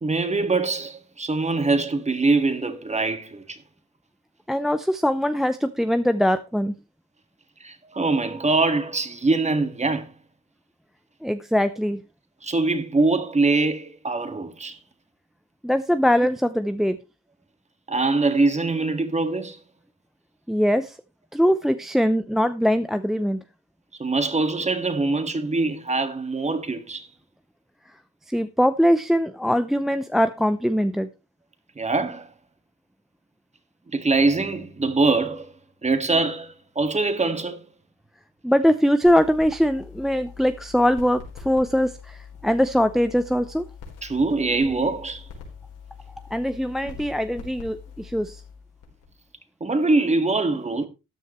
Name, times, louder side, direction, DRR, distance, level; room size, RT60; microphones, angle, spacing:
voice 1, 0.0-3.6 7.6-10.1 12.4-14.8 17.9-19.6 24.0-27.1 31.8-32.3 33.9-35.5 35.8-37.6 44.0-45.2 49.6-50.9, right 3 dB, 20° right, 1.8 m, -23 dB
voice 2, 4.5-6.7 11.2-12.0 15.6-17.0 20.5-21.0 21.3-23.4 28.3-31.1 38.4-42.2 42.4-43.6 46.3-48.4, equal, ahead, 0.6 m, -22 dB
sound 1, 39.0-49.3, left 6 dB, 85° left, 4.1 m, -44 dB
13.5 x 9.5 x 3.1 m
cardioid pair, 90°, 30 cm